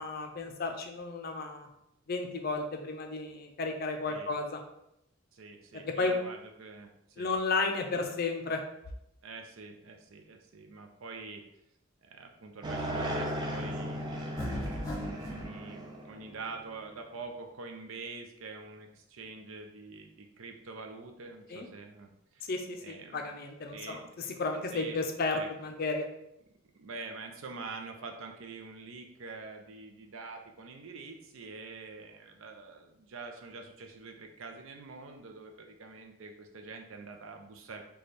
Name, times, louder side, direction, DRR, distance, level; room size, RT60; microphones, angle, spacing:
voice 1, 0.0-1.7 2.1-4.6 5.7-6.2 7.2-8.6 21.5-21.7 22.4-26.1, left 3 dB, 45° left, 4 dB, 0.5 m, -33 dB
voice 2, 5.3-7.4 9.2-11.4 12.0-22.5 22.8-23.3 23.7-24.0 24.7-25.0 25.3-25.5 26.7-37.8, right 4 dB, 70° right, 3 dB, 0.5 m, -46 dB
sound 1, 12.6-17.0, equal, 20° right, 0.4 m, -37 dB
sound 2, 14.4-15.5, equal, 15° left, 0.8 m, -36 dB
3.3 x 2.3 x 4.1 m, 0.81 s
head